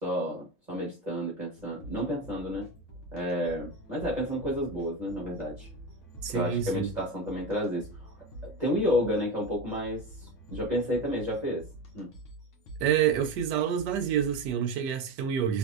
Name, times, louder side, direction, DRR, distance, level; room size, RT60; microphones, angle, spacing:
voice 1, 0.0-2.7 3.1-5.7 6.3-8.1 8.4-11.6 11.9-12.1, equal, 30° right, 1.0 m, -31 dB
sound 1, 1.6-14.5, right 1 dB, 50° left, 1.1 m, -47 dB
voice 2, 6.2-6.9 12.8-15.6, right 9 dB, 75° right, 1.2 m, -27 dB
3.4 x 2.9 x 2.4 m
omnidirectional pair, 1.9 m